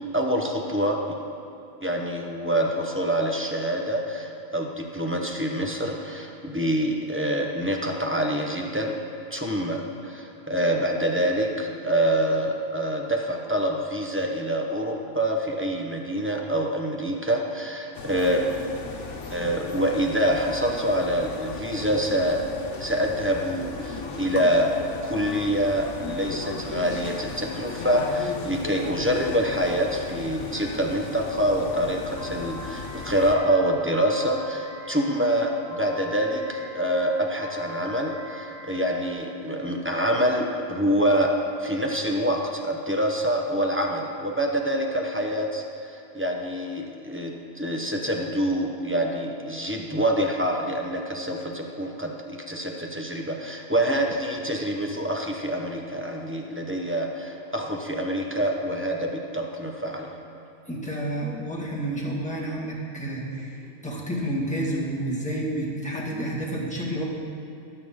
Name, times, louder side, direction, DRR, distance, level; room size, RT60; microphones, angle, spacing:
voice 1, 0.1-1.0 1.8-9.0 9.3-18.5 19.3-22.4 22.8-24.7 25.0-60.1, equal, 10° right, 1 dB, 0.9 m, -26 dB
sound 1, 17.9-33.4, left 4 dB, 85° left, 1.3 m, -36 dB
Piano, 32.2-39.1, left 1 dB, 55° right, 2.0 m, -42 dB
voice 2, 60.7-67.0, right 1 dB, 5° left, -5 dB, 1.9 m, -30 dB
18.5 x 6.9 x 3.8 m, 2.8 s
omnidirectional pair, 1.2 m